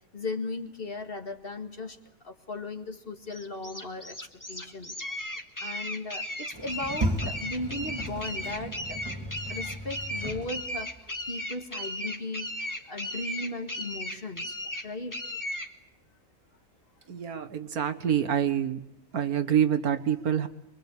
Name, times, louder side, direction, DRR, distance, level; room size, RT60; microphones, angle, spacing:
voice 1, 0.1-2.0 2.2-4.9 5.6-9.0 9.2-12.5 12.9-14.6 14.8-15.2 17.6-17.7, left 2 dB, 40° left, 5 dB, 2.2 m, -37 dB
sound 1, 3.3-15.7, left 1 dB, 10° left, 2.0 m, -36 dB
Sliding door, 6.5-11.0, right 1 dB, 20° right, 2.8 m, -35 dB
voice 2, 17.1-18.8 19.1-20.5, right 9 dB, 80° right, 11 dB, 1.8 m, -26 dB
25.0 x 23.5 x 8.4 m, 0.83 s
omnidirectional pair, 1.6 m